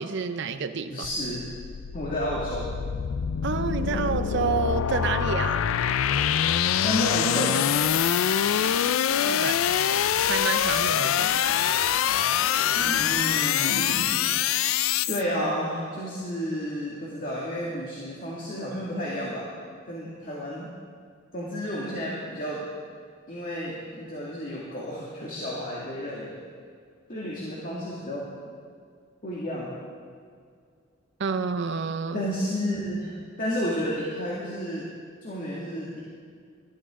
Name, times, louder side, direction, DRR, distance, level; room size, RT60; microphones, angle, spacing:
voice 1, 0.0-1.1 3.4-5.6 8.8-9.7 10.2-11.5 31.2-32.2, right 5 dB, 60° right, 9 dB, 0.6 m, -29 dB
voice 2, 0.9-1.5 1.9-2.7 6.8-7.6 12.7-14.1 15.1-19.5 19.8-20.7 21.3-22.6 23.3-26.4 27.1-28.3 29.2-29.7 32.1-34.9 35.2-36.0, equal, 45° left, -5 dB, 2.1 m, -31 dB
sound 1, 1.0-15.2, left 9 dB, 90° left, 0.4 m, -25 dB
19.0 x 12.5 x 3.7 m, 2.1 s
head